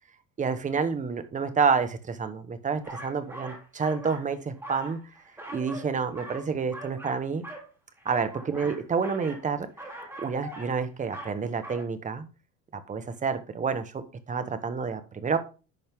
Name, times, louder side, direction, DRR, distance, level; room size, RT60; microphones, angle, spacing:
voice 1, 0.4-5.0 5.5-7.4 8.0-9.7 10.2-12.3 12.7-15.4, right 5 dB, 25° right, 10 dB, 1.3 m, -29 dB
sound 1, 2.8-4.3 4.5-5.9 6.1-7.7 8.0-9.4 9.8-10.7 11.0-11.4 11.6-11.8, right 1 dB, 5° right, 3.3 m, -42 dB
11.0 x 6.2 x 3.7 m, 0.33 s
cardioid pair, 130°, 32 cm